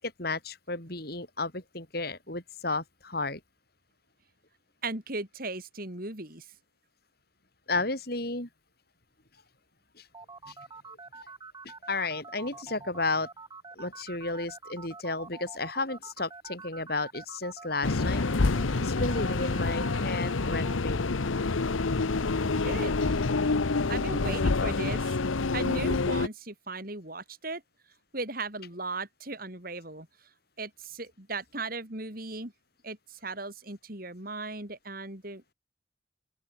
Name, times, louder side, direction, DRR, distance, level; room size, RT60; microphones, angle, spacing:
voice 1, 0.0-3.4 7.7-8.5 10.0-10.1 10.5-10.6 10.9-11.3 11.9-13.3 13.8-18.2 18.6-21.4, left 3 dB, 50° left, 5.5 m, -33 dB
voice 2, 4.8-6.5 22.6-23.3 23.9-25.2 25.5-27.6 28.1-30.1 30.6-32.5 32.8-35.4, right 3 dB, 45° right, 4.8 m, -37 dB
sound 1, 10.1-20.7, right 4 dB, 20° right, 5.0 m, -46 dB
sound 2, 17.8-26.3, left 3 dB, 85° left, 0.9 m, -27 dB
open air
head